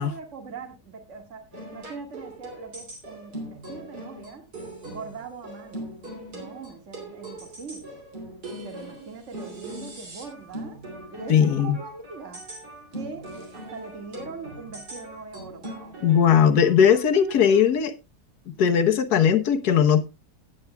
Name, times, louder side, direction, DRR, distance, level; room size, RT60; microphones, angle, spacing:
voice 1, 0.0-1.4 1.7-4.5 4.9-6.0 6.3-8.0 8.6-10.8 11.1-12.4 12.9-16.0, right 4 dB, 45° right, 2.2 m, -41 dB
sound 1, 1.5-17.6, right 1 dB, 75° right, 3.5 m, -41 dB
voice 2, 11.3-11.8 16.0-17.9 18.6-20.0, left 8 dB, 70° left, 1.5 m, -19 dB
17.5 x 8.7 x 2.3 m
omnidirectional pair, 1.7 m